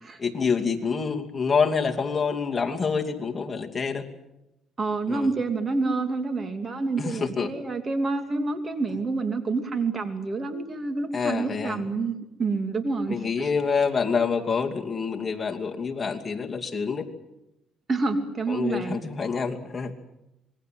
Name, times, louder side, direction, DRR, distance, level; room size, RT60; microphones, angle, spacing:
voice 1, 0.2-4.0 5.1-5.3 7.0-7.5 11.1-11.8 13.1-17.1 18.5-19.9, left 5 dB, 25° left, 2 dB, 2.7 m, -27 dB
voice 2, 4.8-13.5 17.9-19.0, right 3 dB, 35° right, 7 dB, 2.7 m, -28 dB
26.5 x 21.5 x 7.8 m, 0.89 s
cardioid pair, 100°, 0 cm